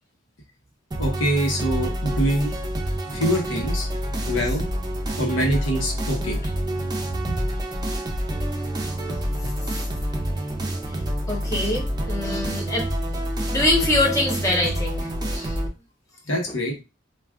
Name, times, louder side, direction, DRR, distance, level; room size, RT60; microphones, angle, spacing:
sound 1, 0.9-15.7, right 1 dB, 20° right, 0.6 m, -27 dB
voice 1, 1.0-2.5 3.1-3.9 4.3-4.6 5.2-6.4 6.8-6.9 7.2-7.5 9.1-9.5 16.3-16.7, equal, 80° left, 1 dB, 1.1 m, -25 dB
voice 2, 11.3-12.9 13.5-15.6, left 2 dB, 15° left, -1 dB, 0.9 m, -24 dB
4.6 x 2.5 x 2.4 m, 0.26 s
head